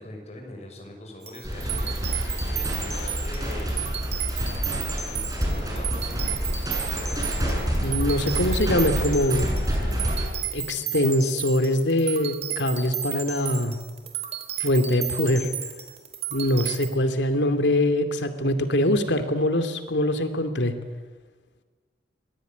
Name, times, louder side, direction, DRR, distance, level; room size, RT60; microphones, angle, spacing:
voice 1, 0.0-4.1 5.1-6.2, left 1 dB, 40° left, 2 dB, 6.5 m, -42 dB
sound 1, 1.2-16.9, right 9 dB, 35° right, 3.4 m, -33 dB
sound 2, 1.4-10.3, equal, 20° right, 7.3 m, -28 dB
voice 2, 7.8-9.5 10.5-13.8 14.6-15.5 16.3-20.7, left 1 dB, 90° left, 9 dB, 2.7 m, -23 dB
26.0 x 20.5 x 9.5 m, 1.4 s
head